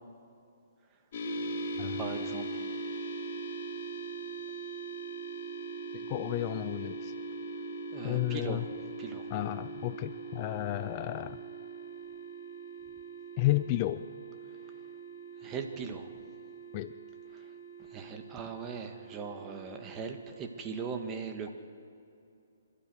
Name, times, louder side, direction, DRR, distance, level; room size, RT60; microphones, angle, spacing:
sound 1, 1.1-20.8, right 3 dB, 50° left, 2.8 m, -41 dB
voice 1, 2.0-2.5 7.9-8.7 9.0-9.2 15.4-16.1 17.9-21.5, right 5 dB, 20° right, 5 dB, 1.9 m, -39 dB
voice 2, 5.9-7.1 8.0-8.7 9.3-11.4 13.4-14.1 16.7-16.9, left 16 dB, 35° left, 14 dB, 0.5 m, -32 dB
26.5 x 12.5 x 8.1 m, 2.6 s
hypercardioid pair, 135°, 0 cm